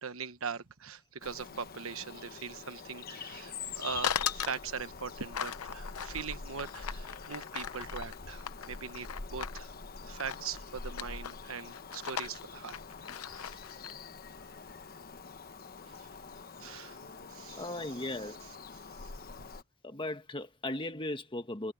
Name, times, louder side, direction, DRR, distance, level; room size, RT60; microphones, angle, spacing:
voice 1, 0.0-9.7 10.1-12.7 13.3-13.5 15.9-16.1 16.6-17.0 17.3-18.5 19.0-19.1, right 6 dB, 65° right, 1.2 m, -41 dB
Bird vocalization bird call bird song, 1.2-19.6, left 4 dB, 45° left, 1.1 m, -45 dB
sound 1, 4.0-4.6 5.3-9.6 10.2-10.6 10.8-11.4 11.7-13.9, left 8 dB, 85° left, 0.7 m, -38 dB
voice 2, 17.6-18.4 19.8-21.7, left 1 dB, 20° left, 1.6 m, -37 dB
head